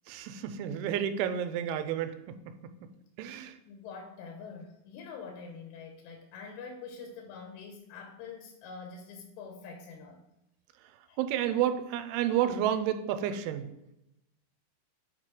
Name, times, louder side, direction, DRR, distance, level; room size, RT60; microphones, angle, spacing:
voice 1, 0.1-2.2 3.2-3.6 11.2-13.7, right 10 dB, 85° right, 9 dB, 3.1 m, -30 dB
voice 2, 3.7-10.2 11.1-11.2, left 5 dB, 85° left, 2 dB, 3.5 m, -45 dB
9.2 x 4.6 x 4.9 m, 0.85 s
omnidirectional pair, 5.4 m